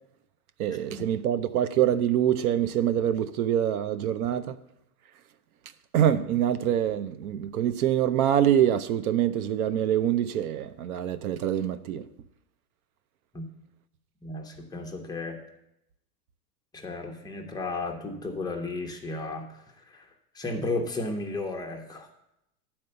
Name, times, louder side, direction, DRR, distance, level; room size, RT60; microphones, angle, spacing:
voice 1, 0.6-4.6 5.9-12.1, right 10 dB, 65° right, 0.6 m, -25 dB
voice 2, 14.2-15.4 16.7-20.1 20.3-22.1, left 2 dB, 10° left, 0.8 m, -34 dB
9.5 x 4.4 x 6.7 m
hypercardioid pair, 130°, 47 cm